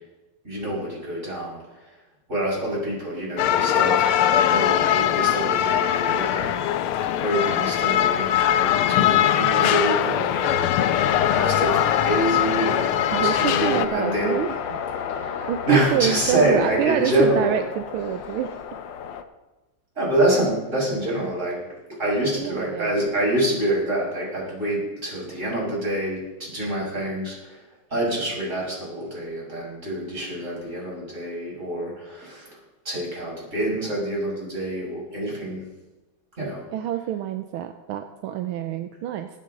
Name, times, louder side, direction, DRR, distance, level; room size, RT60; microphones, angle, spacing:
voice 1, 0.4-1.6 2.3-4.1 4.4-6.5 6.9-11.1 11.3-14.4 15.2-17.6 20.0-21.6 22.0-27.6 27.9-32.6 32.8-35.6 36.4-36.6, right 1 dB, 30° right, -5 dB, 6.2 m, -26 dB
sound 1, 3.4-13.9, left 10 dB, 80° left, 1.6 m, -21 dB
sound 2, 10.9-19.2, left 7 dB, 65° left, 1.4 m, -31 dB
voice 2, 13.1-14.8 15.2-18.5 22.3-22.9 36.7-39.3, right 10 dB, 80° right, 8 dB, 1.5 m, -26 dB
21.5 x 9.5 x 3.8 m, 1.1 s
omnidirectional pair, 2.4 m